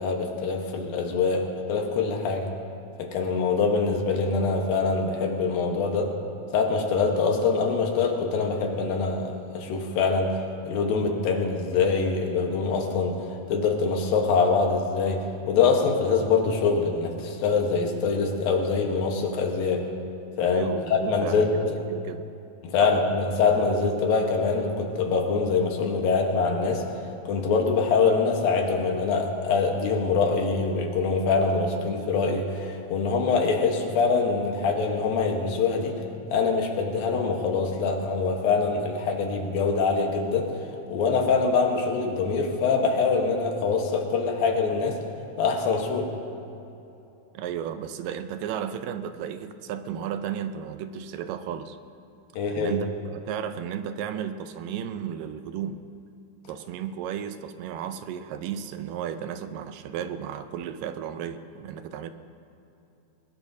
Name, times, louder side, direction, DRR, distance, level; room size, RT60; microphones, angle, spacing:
voice 1, 0.0-2.5 3.0-6.1 6.5-19.8 20.4-21.8 22.6-36.0 36.3-40.5 40.9-45.0 45.4-46.1 52.3-52.8, left 4 dB, 75° left, 2 dB, 3.0 m, -24 dB
voice 2, 20.5-22.3 22.8-22.9 47.3-51.8 52.5-55.8 56.5-62.1, right 9 dB, 75° right, 9 dB, 2.2 m, -34 dB
21.5 x 20.0 x 2.7 m, 2.9 s
omnidirectional pair, 4.2 m